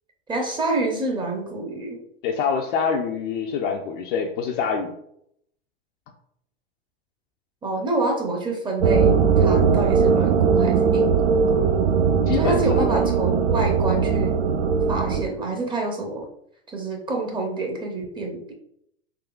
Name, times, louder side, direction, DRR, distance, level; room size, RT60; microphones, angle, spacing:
voice 1, 0.3-2.0 7.6-11.1 12.3-14.4 14.9-16.3 16.7-18.5, right 2 dB, 15° right, 1 dB, 0.6 m, -27 dB
voice 2, 2.2-4.9 12.3-13.1, left 6 dB, 55° left, 1 dB, 0.4 m, -26 dB
sound 1, 8.8-15.2, right 6 dB, 80° right, 0.5 m, -19 dB
3.7 x 2.7 x 2.3 m, 0.73 s
hypercardioid pair, 105°, 33 cm